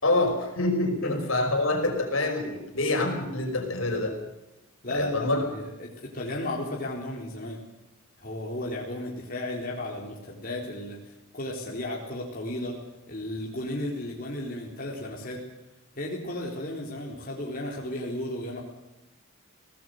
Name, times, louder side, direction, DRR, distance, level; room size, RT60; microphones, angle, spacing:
voice 1, 0.0-4.2 4.9-5.4, left 2 dB, 70° left, 4 dB, 5.4 m, -26 dB
voice 2, 4.8-7.6 8.2-12.8 13.1-15.4 16.0-18.6, left 1 dB, 40° left, -2 dB, 4.0 m, -34 dB
24.0 x 18.0 x 6.7 m, 0.98 s
head